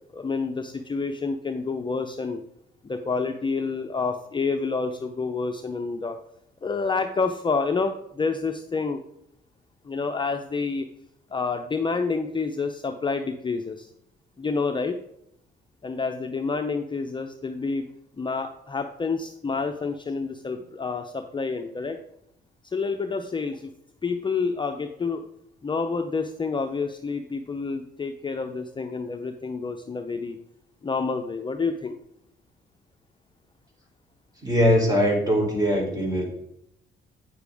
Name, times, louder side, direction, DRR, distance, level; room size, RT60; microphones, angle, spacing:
voice 1, 0.1-2.4 2.8-6.2 6.6-9.0 9.8-10.9 11.3-13.9 14.4-15.0 15.8-17.9 18.2-22.0 22.6-23.7 24.0-25.2 25.6-30.4 30.8-32.0, left 4 dB, 25° left, 5 dB, 0.7 m, -28 dB
voice 2, 34.4-36.3, equal, 20° right, 0 dB, 3.3 m, -21 dB
9.1 x 6.8 x 3.5 m, 0.77 s
cardioid pair, 90°, 20 cm